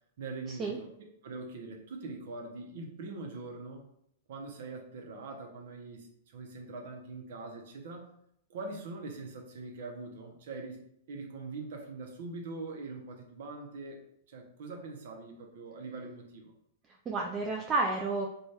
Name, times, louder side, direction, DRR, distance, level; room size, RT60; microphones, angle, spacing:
voice 1, 0.2-3.8 4.3-8.1 8.5-10.8 11.1-14.0 14.3-16.5, right 3 dB, 65° right, 3 dB, 0.7 m, -43 dB
voice 2, 16.9-18.3, right 3 dB, 25° right, -1 dB, 0.4 m, -31 dB
2.6 x 2.3 x 3.2 m, 0.74 s
hypercardioid pair, 115°, 0 cm